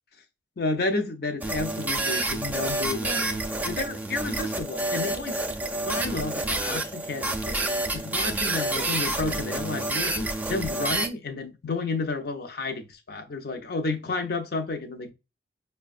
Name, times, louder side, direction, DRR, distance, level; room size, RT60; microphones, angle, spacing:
voice 1, 0.6-5.4 5.8-7.7 7.9-15.1, left 3 dB, 60° left, 0.6 m, -31 dB
sound 1, 1.4-11.1, right 2 dB, 10° right, 0.4 m, -29 dB
5.5 x 2.2 x 2.4 m
head